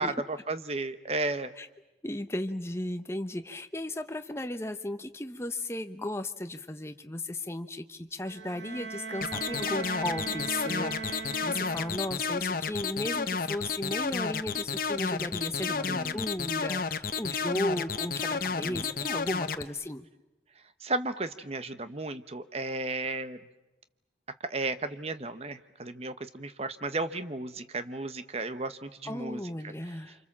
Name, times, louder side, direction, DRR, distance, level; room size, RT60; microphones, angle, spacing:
voice 1, 0.0-1.5 15.9-16.2 18.6-18.9 20.8-23.4 24.4-29.7, right 2 dB, 35° right, 11 dB, 1.0 m, -34 dB
voice 2, 2.0-20.1 29.0-30.2, left 1 dB, 15° left, 8 dB, 0.9 m, -35 dB
Bowed string instrument, 8.2-12.3, right 4 dB, 75° right, 1.4 m, -39 dB
sound 1, 9.2-19.6, left 5 dB, 50° left, 0.9 m, -31 dB
29.0 x 26.5 x 7.4 m, 1.0 s
head